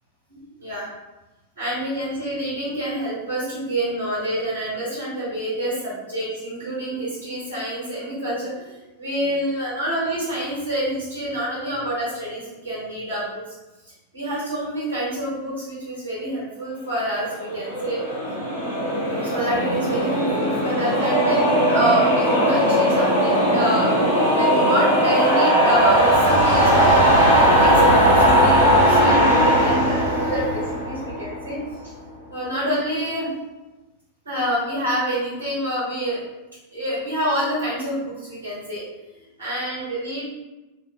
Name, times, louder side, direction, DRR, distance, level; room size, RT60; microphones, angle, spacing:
voice 1, 0.3-0.9 1.6-13.4 14.1-18.2 19.2-31.6 32.3-33.3 34.2-36.2 36.7-38.8 39.4-40.2, right 1 dB, 80° right, -9 dB, 1.4 m, -27 dB
sound 1, 17.2-31.5, equal, 80° left, 1.0 m, -18 dB
2.8 x 2.1 x 2.8 m, 1.1 s
figure-of-eight pair, 90°, 0 cm